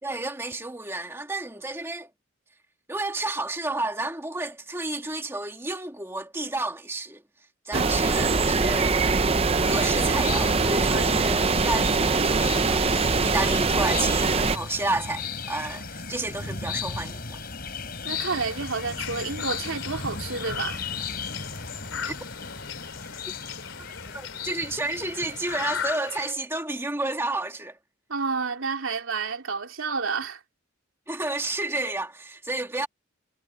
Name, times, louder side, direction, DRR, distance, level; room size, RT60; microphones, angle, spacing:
voice 1, 0.0-2.1 2.9-7.2 7.7-9.0 9.7-17.4 22.1-22.2 23.3-23.4 23.8-23.9 24.1-27.8 31.1-32.9, right 2 dB, 10° right, 1.9 m, -31 dB
sound 1, 7.7-14.6, right 4 dB, 30° right, 0.6 m, -23 dB
voice 2, 7.7-8.2 10.9-11.1 18.0-20.8 28.1-30.4, right 4 dB, 80° right, 3.1 m, -30 dB
sound 2, 9.6-25.9, left 4 dB, 45° left, 4.6 m, -36 dB
sound 3, 18.1-26.3, left 7 dB, 75° left, 4.1 m, -38 dB
head